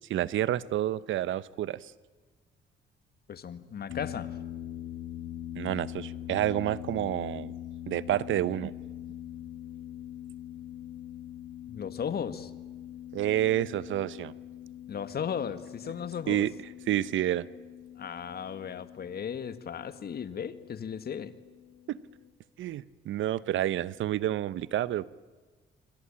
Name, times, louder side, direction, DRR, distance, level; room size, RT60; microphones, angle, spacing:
voice 1, 0.1-1.9 5.5-7.5 7.9-8.7 13.1-14.3 16.3-16.5 16.9-17.5 21.9-22.0 22.6-25.1, right 12 dB, 75° right, 18 dB, 0.9 m, -29 dB
voice 2, 3.3-4.3 11.7-12.5 14.9-16.5 18.0-21.4, left 7 dB, 50° left, 12 dB, 1.8 m, -36 dB
sound 1, 3.9-22.3, left 11 dB, 80° left, 2.0 m, -43 dB
26.0 x 25.5 x 8.9 m, 1.3 s
cardioid pair, 90°, 20 cm